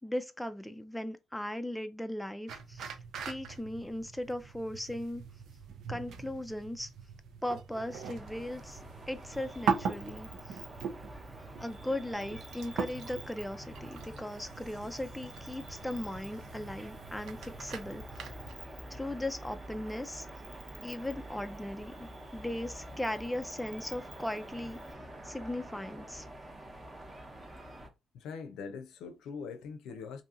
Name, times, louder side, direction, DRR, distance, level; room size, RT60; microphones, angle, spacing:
voice 1, 0.0-2.9 3.2-5.2 5.9-6.9 7.4-8.8 9.1-10.6 11.6-18.0 18.9-20.3 20.8-24.8 25.2-26.3, left 1 dB, 5° left, 0.4 m, -38 dB
sound 1, 2.5-18.5, right 6 dB, 75° right, 0.5 m, -41 dB
sound 2, 8.1-27.9, right 1 dB, 25° right, 0.9 m, -47 dB
Cricket, 9.3-24.9, right 2 dB, 45° right, 1.1 m, -55 dB
voice 2, 28.1-30.2, left 5 dB, 85° left, 0.5 m, -42 dB
2.8 x 2.7 x 2.4 m
cardioid pair, 90°, 0 cm